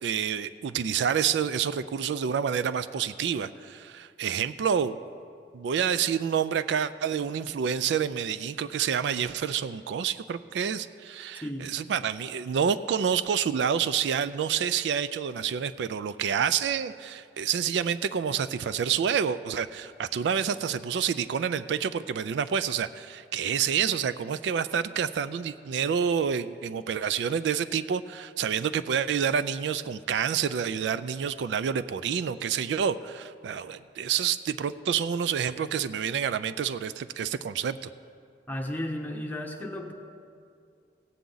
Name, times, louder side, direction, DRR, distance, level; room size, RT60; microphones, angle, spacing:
voice 1, 0.0-5.0 5.5-37.9, right 7 dB, 70° right, 14 dB, 0.3 m, -28 dB
voice 2, 38.5-39.9, left 1 dB, 10° left, 1 dB, 0.9 m, -34 dB
17.0 x 8.2 x 3.9 m, 2.3 s
head